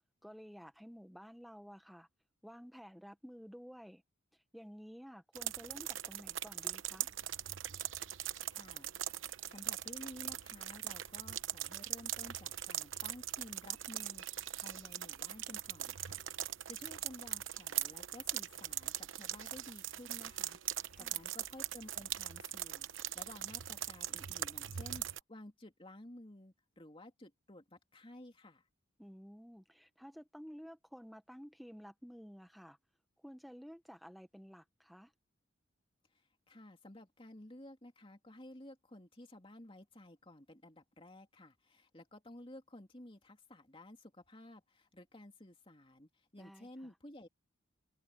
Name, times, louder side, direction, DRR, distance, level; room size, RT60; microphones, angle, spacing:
voice 1, 0.2-2.1 2.4-4.0 4.3-7.1 20.9-21.2 29.0-32.8 33.2-35.1 46.4-47.0, equal, ahead, 1.0 m, -53 dB
sound 1, 5.4-25.2, right 12 dB, 70° right, 0.9 m, -41 dB
voice 2, 8.5-8.9 9.5-16.2 16.7-28.6 36.5-47.3, left 1 dB, 25° left, 3.0 m, -54 dB
head